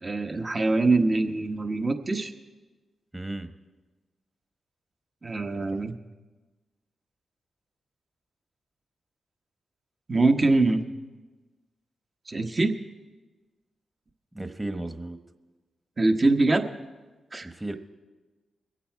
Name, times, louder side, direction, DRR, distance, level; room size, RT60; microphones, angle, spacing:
voice 1, 0.0-2.3 5.2-5.9 10.1-10.8 12.3-12.7 16.0-16.6 17.3-17.5, right 2 dB, 40° right, 6 dB, 1.2 m, -23 dB
voice 2, 3.1-3.5 14.3-15.2 17.4-17.8, right 2 dB, 20° right, 8 dB, 1.3 m, -34 dB
22.5 x 8.3 x 4.7 m, 1.3 s
supercardioid pair, 40°, 0 cm